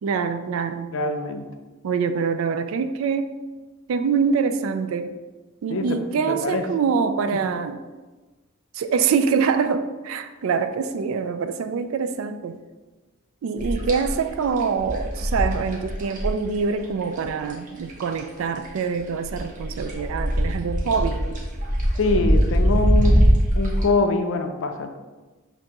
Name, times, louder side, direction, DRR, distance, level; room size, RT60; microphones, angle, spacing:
voice 1, 0.0-0.9 1.8-3.4 3.9-5.2 5.6-7.8 8.7-12.6 13.4-21.4, right 5 dB, 70° right, 10 dB, 0.3 m, -25 dB
voice 2, 0.9-1.5 5.7-6.0 6.3-6.6 22.0-23.3 23.5-25.0, left 2 dB, 60° left, 6 dB, 0.4 m, -24 dB
sound 1, 13.6-18.4 18.6-23.8, equal, 40° right, 0.8 m, -22 dB
6.4 x 2.6 x 2.9 m, 1.2 s
head